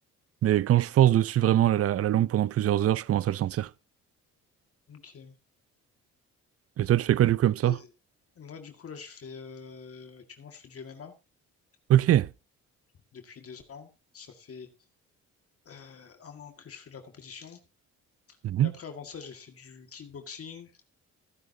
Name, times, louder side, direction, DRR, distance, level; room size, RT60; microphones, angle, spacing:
voice 1, 0.4-3.7 6.8-7.8 11.9-12.3 18.4-18.7, right 12 dB, 50° right, 0.5 m, -23 dB
voice 2, 4.9-5.3 7.6-7.9 8.4-11.1 13.1-13.9 14.1-14.7 15.7-17.6 18.6-20.8, left 6 dB, 50° left, 1.9 m, -45 dB
15.5 x 10.5 x 2.8 m
cardioid pair, 90°, 30 cm